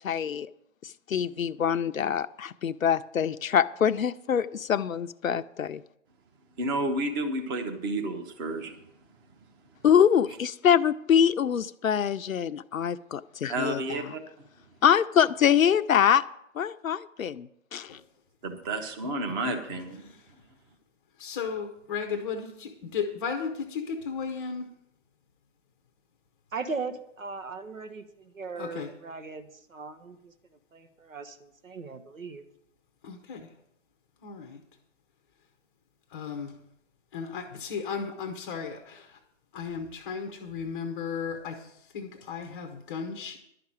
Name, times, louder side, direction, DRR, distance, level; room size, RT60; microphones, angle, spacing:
voice 1, 0.0-0.5 0.8-5.8 9.8-14.0 14.8-16.2 16.5-18.0, left 8 dB, 85° left, 12 dB, 0.7 m, -24 dB
voice 2, 6.6-8.8 13.5-14.2 18.4-20.1, right 2 dB, 15° right, 5 dB, 0.9 m, -31 dB
voice 3, 21.2-24.7 28.6-28.9 33.0-33.4 34.2-34.6 36.1-36.5 37.1-39.2 39.5-41.7 41.9-43.4, left 6 dB, 15° left, 4 dB, 0.7 m, -35 dB
voice 4, 26.5-32.4, right 4 dB, 80° right, 8 dB, 1.5 m, -39 dB
11.5 x 5.9 x 8.8 m, 0.76 s
hypercardioid pair, 145°, 39 cm